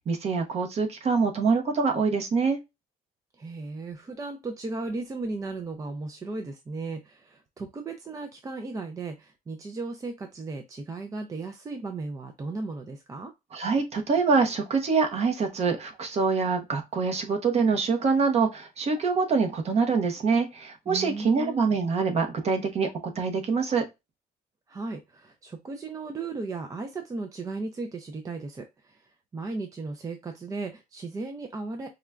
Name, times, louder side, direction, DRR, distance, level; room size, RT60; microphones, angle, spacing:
voice 1, 0.1-2.6 13.5-22.9 23.2-23.8, right 4 dB, 40° right, 0.9 m, -25 dB
voice 2, 3.4-13.3 20.9-21.7 24.7-31.9, right 3 dB, 20° right, 0.4 m, -36 dB
4.8 x 2.2 x 2.3 m
cardioid pair, 130°, 16 cm